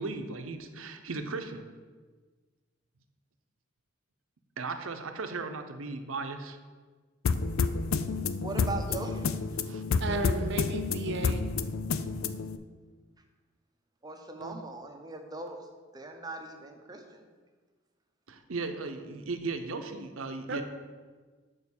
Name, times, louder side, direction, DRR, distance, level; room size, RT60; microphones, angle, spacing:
voice 1, 0.0-1.7 4.6-6.6 9.6-9.8 18.3-20.6, right 3 dB, 85° right, 7 dB, 0.8 m, -36 dB
sound 1, 7.2-12.6, left 4 dB, 85° left, 0.5 m, -30 dB
voice 2, 8.4-9.4 14.0-15.7 15.9-17.3, right 2 dB, 20° right, 4 dB, 0.8 m, -40 dB
voice 3, 10.0-11.4 14.4-14.5 20.5-20.6, right 2 dB, 60° right, 7 dB, 0.8 m, -33 dB
6.6 x 5.2 x 7.1 m, 1.4 s
head